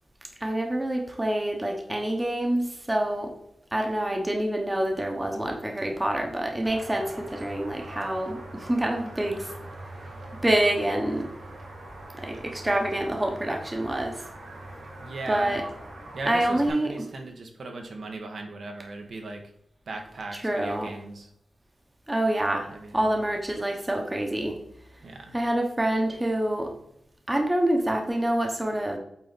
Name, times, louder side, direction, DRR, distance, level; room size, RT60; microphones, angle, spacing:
voice 1, 0.4-3.3 3.7-9.5 10.4-11.3 12.2-14.2 15.3-15.6 16.3-16.9 20.4-20.9 22.1-22.7 22.9-24.6 25.3-26.7 27.3-29.0, right 1 dB, 15° right, 2 dB, 1.0 m, -26 dB
sound 1, 6.6-16.7, right 1 dB, 90° right, 1.9 m, -42 dB
voice 2, 15.0-15.6 16.1-19.4 19.9-21.3 22.7-23.1 25.0-25.4, right 3 dB, 65° right, 3 dB, 1.2 m, -38 dB
8.4 x 4.1 x 4.1 m, 0.75 s
wide cardioid pair, 155°, 0 cm